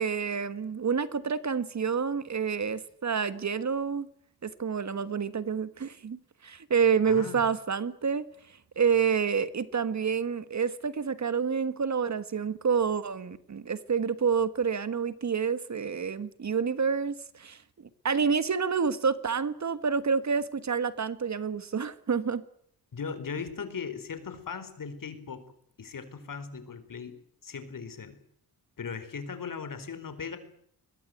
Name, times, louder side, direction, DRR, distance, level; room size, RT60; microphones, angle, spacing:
voice 1, 0.0-4.1 4.4-8.2 8.7-17.6 18.0-22.4, right 6 dB, 45° right, 14 dB, 1.5 m, -28 dB
voice 2, 7.1-7.4 22.9-25.5 25.8-27.2 27.4-28.2 28.8-30.4, left 5 dB, 55° left, 11 dB, 4.5 m, -38 dB
22.5 x 21.0 x 9.3 m, 0.67 s
wide cardioid pair, 115°, 38 cm